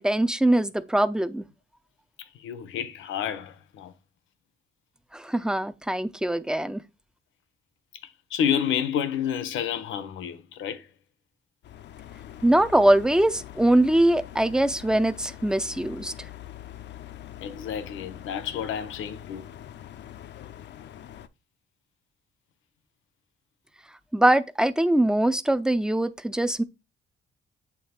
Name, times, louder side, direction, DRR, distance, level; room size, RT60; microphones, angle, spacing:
voice 1, 0.0-1.4 5.1-6.8 12.4-16.1 24.1-26.6, right 1 dB, 5° right, 0.5 m, -22 dB
voice 2, 2.2-3.9 8.0-10.9 17.4-19.5, left 9 dB, 80° left, 0.9 m, -30 dB
sound 1, 11.6-21.3, left 12 dB, 60° left, 0.5 m, -43 dB
8.3 x 3.2 x 4.3 m
cardioid pair, 90°, 20 cm